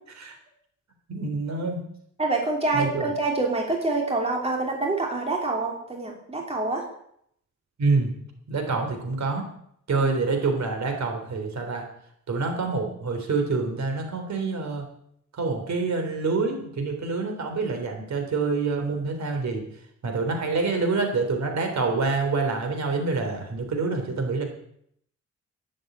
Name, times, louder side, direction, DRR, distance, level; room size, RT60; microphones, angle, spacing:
voice 1, 1.1-1.8 2.7-3.0 7.8-8.1 8.5-9.4 9.9-11.8 12.3-14.8 15.3-19.6 20.0-24.4, right 4 dB, 60° right, 4 dB, 3.7 m, -26 dB
voice 2, 2.2-6.8 10.0-10.1, right 3 dB, 20° right, 0 dB, 3.1 m, -26 dB
12.5 x 10.5 x 9.2 m, 0.71 s
wide cardioid pair, 170°, 31 cm